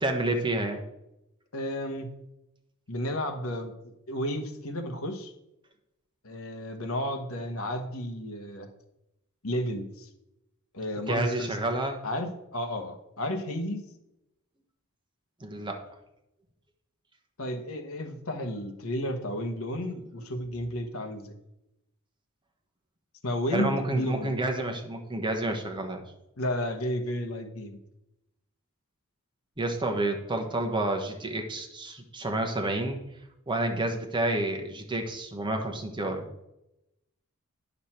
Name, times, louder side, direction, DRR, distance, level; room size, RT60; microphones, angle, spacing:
voice 1, 0.0-0.8 11.0-12.0 15.4-15.8 23.5-26.0 29.6-33.0 33.5-36.2, right 2 dB, 20° right, 3 dB, 1.2 m, -29 dB
voice 2, 1.5-2.1 2.9-3.7 4.1-5.3 6.2-8.7 9.4-10.1 10.7-11.6 12.0-13.8 17.4-21.3 23.2-24.4 26.4-27.8, equal, 70° left, 5 dB, 1.2 m, -32 dB
9.1 x 6.6 x 4.4 m, 0.87 s
head